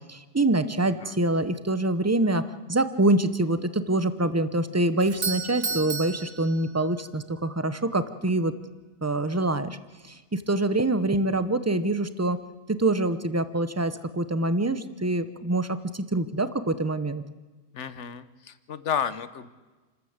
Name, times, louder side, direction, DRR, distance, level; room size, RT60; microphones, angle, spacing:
voice 1, 0.1-8.5 9.0-9.8 10.0-12.4 12.7-17.2, right 2 dB, 15° right, 12 dB, 0.8 m, -25 dB
Doorbell, 5.0-7.2, right 4 dB, 50° right, 1.6 m, -33 dB
voice 2, 17.7-19.5, left 8 dB, 75° left, 14 dB, 1.3 m, -32 dB
29.0 x 13.5 x 8.0 m, 1.3 s
omnidirectional pair, 1.2 m